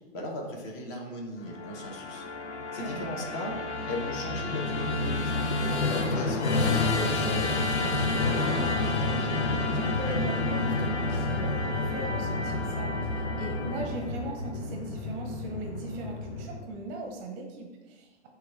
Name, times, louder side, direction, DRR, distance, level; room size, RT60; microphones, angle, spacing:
voice 1, 0.1-2.3 2.7-3.6 3.9-8.2, left 1 dB, 30° left, 1 dB, 0.8 m, -37 dB
Musical instrument, 1.5-16.8, left 2 dB, 75° left, 0.6 m, -29 dB
voice 2, 2.7-3.1 8.5-18.3, right 2 dB, 30° right, 2 dB, 0.6 m, -39 dB
5.8 x 2.3 x 3.3 m, 1.2 s
figure-of-eight pair, 105°, 34 cm